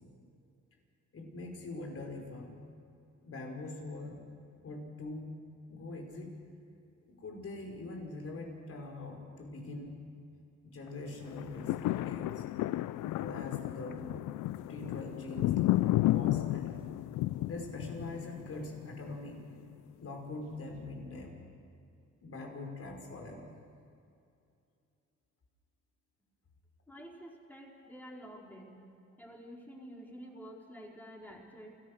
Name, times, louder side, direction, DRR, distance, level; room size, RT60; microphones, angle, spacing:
voice 1, 1.1-2.7 3.2-4.2 4.6-5.4 5.7-6.4 7.1-10.0 10.6-12.4 13.1-14.2 14.7-15.7 16.0-16.9 17.4-19.5 20.0-21.3 22.2-23.5, left 2 dB, 50° left, 1 dB, 5.2 m, -43 dB
sound 1, 11.3-19.5 20.0-20.1, left 16 dB, 80° left, 0.5 m, -32 dB
voice 2, 26.9-28.8 29.2-31.8, equal, 5° left, -2 dB, 4.6 m, -49 dB
29.0 x 15.0 x 6.5 m, 2.6 s
cardioid pair, 90°, 30 cm